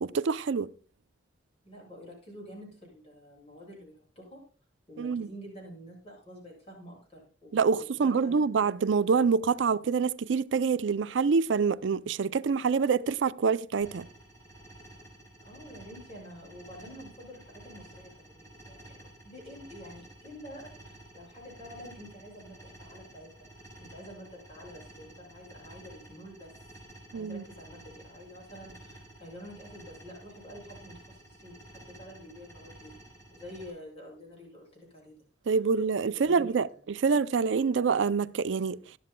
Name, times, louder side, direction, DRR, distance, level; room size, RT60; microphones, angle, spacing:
voice 1, 0.0-0.7 5.0-5.3 7.5-14.1 27.1-27.4 35.5-38.8, right 5 dB, 85° right, 0.4 m, -26 dB
voice 2, 1.6-4.4 4.9-8.8 15.4-23.4 23.8-26.5 27.1-32.9 33.3-35.2 36.1-36.6, equal, 35° left, 7.3 m, -48 dB
sound 1, 13.8-33.7, right 1 dB, 15° left, 4.6 m, -52 dB
18.0 x 12.0 x 2.2 m
head